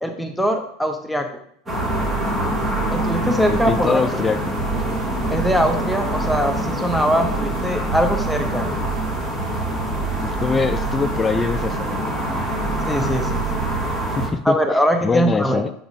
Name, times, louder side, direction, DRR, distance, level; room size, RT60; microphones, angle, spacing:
voice 1, 0.0-1.3 2.9-4.0 5.3-8.7 12.9-13.6 14.4-15.6, equal, ahead, 4 dB, 0.7 m, -22 dB
sound 1, 1.7-14.3, right 1 dB, 20° right, 1.7 m, -25 dB
sound 2, 1.9-14.1, right 7 dB, 40° right, 1.7 m, -31 dB
voice 2, 3.5-4.4 10.2-12.0 14.2-14.6 15.0-15.7, left 4 dB, 20° left, 10 dB, 0.3 m, -23 dB
6.9 x 6.0 x 2.6 m, 0.67 s
hypercardioid pair, 95°, 0 cm